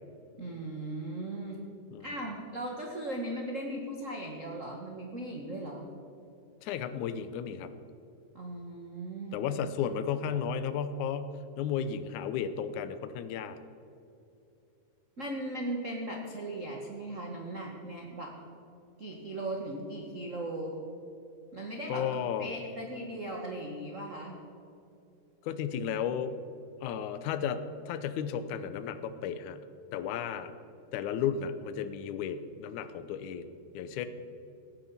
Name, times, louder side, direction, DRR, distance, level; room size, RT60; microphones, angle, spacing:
voice 1, 0.4-1.6 2.0-5.9 8.3-9.4 15.2-18.3 19.0-20.8 21.5-24.4, right 1 dB, 35° right, 0 dB, 1.2 m, -38 dB
voice 2, 6.6-7.7 9.3-13.6 21.9-22.5 25.4-26.3 26.8-29.6 29.9-30.5 30.9-34.1, left 8 dB, 70° left, 10 dB, 2.1 m, -34 dB
17.0 x 10.5 x 7.3 m, 2.6 s
omnidirectional pair, 3.9 m